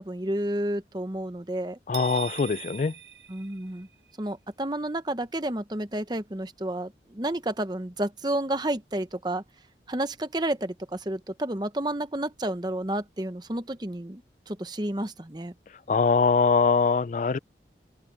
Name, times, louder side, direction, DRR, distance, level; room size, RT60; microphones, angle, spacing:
voice 1, 0.0-1.8 3.3-3.9 4.2-9.4 9.9-15.5, right 1 dB, 25° right, 1.0 m, -31 dB
voice 2, 1.9-2.9 15.9-17.4, left 4 dB, 45° left, 0.3 m, -22 dB
sound 1, 1.9-4.1, right 9 dB, 80° right, 1.3 m, -41 dB
open air
head